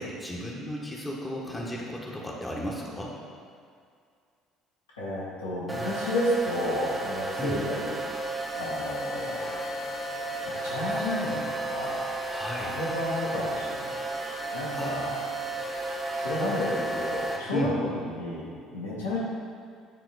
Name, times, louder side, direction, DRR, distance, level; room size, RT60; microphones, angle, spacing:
voice 1, 0.0-3.1 7.4-7.6 12.3-12.8 14.7-15.1 17.5-17.7, equal, 10° left, -3 dB, 1.4 m, -34 dB
voice 2, 5.0-7.9 8.5-9.6 9.9-10.1 10.5-12.0 12.5-14.0 14.5-15.1 16.1-19.2, left 1 dB, 85° left, -8 dB, 1.7 m, -31 dB
sound 1, 5.7-17.4, right 1 dB, 15° right, 1.4 m, -33 dB
9.3 x 4.1 x 4.1 m, 2.2 s
figure-of-eight pair, 55°, 0 cm